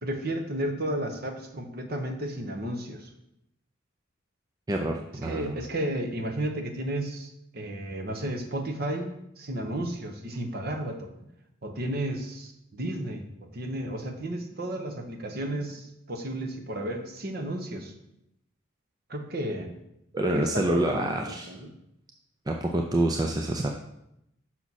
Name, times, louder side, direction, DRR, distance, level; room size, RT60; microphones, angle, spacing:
voice 1, 0.0-3.1 5.2-11.1 11.6-13.2 13.5-17.9 19.1-19.7 20.3-21.7, right 1 dB, 50° right, 4 dB, 0.9 m, -33 dB
voice 2, 4.7-5.6 20.1-21.5 22.5-23.7, right 1 dB, 20° right, 2 dB, 0.4 m, -27 dB
6.1 x 5.9 x 4.1 m, 0.83 s
head